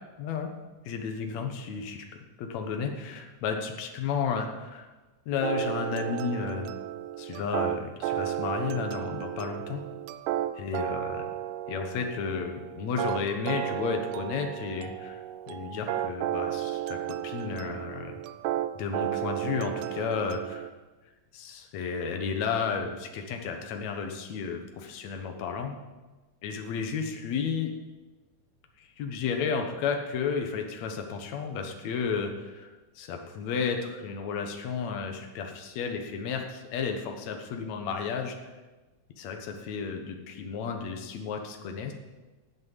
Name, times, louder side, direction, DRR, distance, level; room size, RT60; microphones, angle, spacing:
voice 1, 0.2-0.5 0.9-2.0 2.4-4.9 5.3-6.7 7.2-9.8 10.6-11.3 11.7-15.2 15.5-18.1 18.8-20.7 21.3-25.8 26.4-27.7 28.8-32.7 33.0-38.4 39.2-41.9, left 6 dB, 70° left, 4 dB, 2.5 m, -32 dB
sound 1, 5.4-20.7, right 12 dB, 85° right, 2.0 m, -33 dB
12.0 x 8.2 x 7.3 m, 1.2 s
omnidirectional pair, 3.4 m